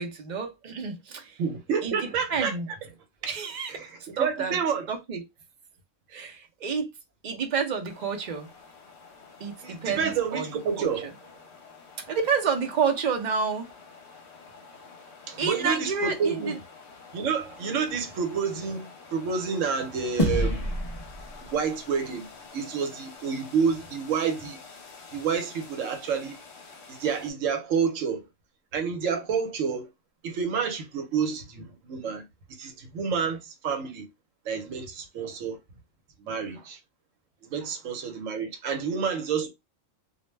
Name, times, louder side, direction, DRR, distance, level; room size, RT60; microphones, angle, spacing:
voice 1, 0.0-1.4 1.8-2.7 3.3-3.9 4.2-4.6 4.9-5.2 6.1-6.9 7.2-8.5 9.4-10.5 10.8-11.1 12.1-13.7 15.4-16.6, right 5 dB, 50° right, 0.6 m, -29 dB
voice 2, 1.4-2.6 3.7-3.9 4.1-4.9 9.6-11.1 15.3-16.6 17.1-20.8 21.4-22.3 22.5-24.6 25.1-26.4 26.9-28.3 28.7-29.9 30.2-32.2 32.6-34.1 34.4-35.6 36.2-36.8 37.5-39.5, right 6 dB, 75° right, 1.1 m, -29 dB
sound 1, 7.9-27.3, left 4 dB, 60° left, 0.9 m, -49 dB
sound 2, 20.2-22.8, left 1 dB, 40° left, 0.5 m, -29 dB
2.5 x 2.1 x 3.1 m
omnidirectional pair, 1.4 m